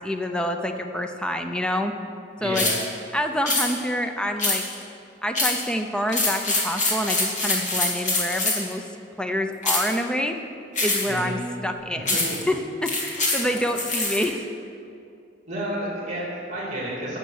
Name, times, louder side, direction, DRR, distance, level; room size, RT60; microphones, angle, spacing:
voice 1, 0.0-1.9 2.4-2.7 3.1-4.6 5.2-8.9 9.2-10.4 10.8-12.2 12.5-14.4, equal, 5° left, 5 dB, 0.6 m, -27 dB
voice 2, 2.4-2.7 11.0-11.4 13.5-13.6 15.5-17.2, right 1 dB, 40° right, -5 dB, 2.9 m, -31 dB
sound 1, 2.5-2.8 3.5-3.7 4.4-4.8 5.3-5.6 6.1-8.7 9.6-9.9 10.8-11.2 12.1-12.4 12.9-14.2, left 2 dB, 40° left, 2.6 m, -24 dB
13.0 x 6.7 x 8.0 m, 2.5 s
head